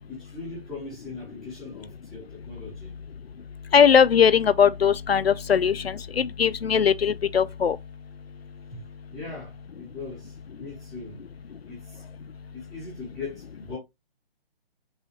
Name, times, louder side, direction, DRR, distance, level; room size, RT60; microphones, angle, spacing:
voice 1, 0.1-2.9 8.7-8.8 9.1-11.3 11.6-12.0 12.5-13.8, left 3 dB, ahead, 0.6 m, -40 dB
voice 2, 3.7-7.8, left 7 dB, 80° left, 0.5 m, -20 dB
5.5 x 2.7 x 2.7 m
figure-of-eight pair, 140°, 30 cm